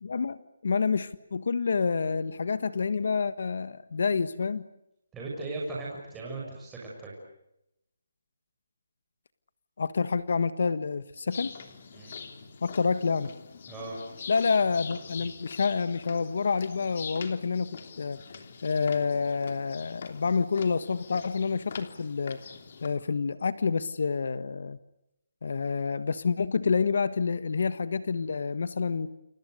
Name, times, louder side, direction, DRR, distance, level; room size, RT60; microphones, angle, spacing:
voice 1, 0.0-4.7 9.8-11.6 12.6-13.3 14.3-18.3 18.6-22.4 22.8-24.8 25.4-29.1, left 5 dB, 55° left, 14 dB, 1.4 m, -28 dB
voice 2, 5.1-7.1 11.9-12.1 13.7-14.0, right 2 dB, 5° right, -4 dB, 6.6 m, -37 dB
sound 1, 11.3-22.9, left 6 dB, 40° left, 3.2 m, -44 dB
30.0 x 29.5 x 6.6 m, 0.85 s
hypercardioid pair, 170°, 0 cm